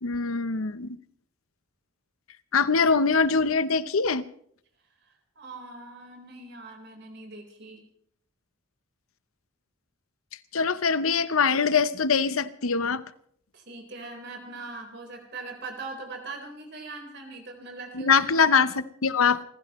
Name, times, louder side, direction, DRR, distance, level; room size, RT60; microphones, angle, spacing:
voice 1, 0.0-1.0 2.5-4.2 10.5-13.0 17.9-19.4, left 5 dB, 85° left, 0.8 m, -23 dB
voice 2, 5.0-7.8 13.5-18.1, right 3 dB, 55° right, 4.2 m, -41 dB
29.0 x 15.0 x 3.1 m
head